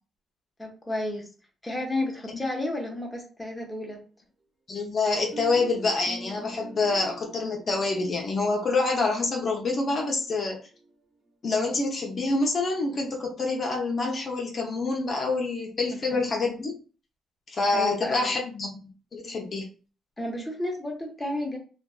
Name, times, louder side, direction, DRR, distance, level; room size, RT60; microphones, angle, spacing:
voice 1, 0.6-1.3 1.6-4.0 15.9-16.2 17.7-18.4 20.2-21.6, left 1 dB, 10° left, 0 dB, 0.7 m, -32 dB
voice 2, 4.7-10.6 11.4-16.8 17.5-18.7 19.1-19.7, left 3 dB, 45° left, 0 dB, 0.6 m, -27 dB
sound 1, 5.1-10.9, right 1 dB, 30° right, 0.5 m, -43 dB
2.5 x 2.2 x 2.3 m, 0.37 s
cardioid pair, 90°, 0 cm